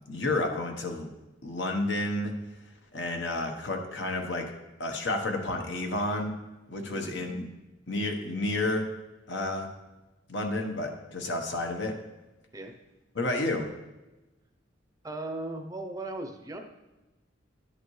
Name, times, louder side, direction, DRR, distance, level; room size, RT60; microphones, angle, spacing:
voice 1, 0.1-1.1 1.4-2.4 2.9-4.5 4.8-6.4 6.7-7.5 7.9-8.9 9.3-9.7 10.3-11.9 13.1-13.7, left 2 dB, 65° left, 3 dB, 1.1 m, -30 dB
voice 2, 6.8-7.2 12.5-12.7 15.0-16.6, right 2 dB, 20° right, 5 dB, 0.6 m, -37 dB
10.5 x 8.1 x 3.2 m, 1.1 s
head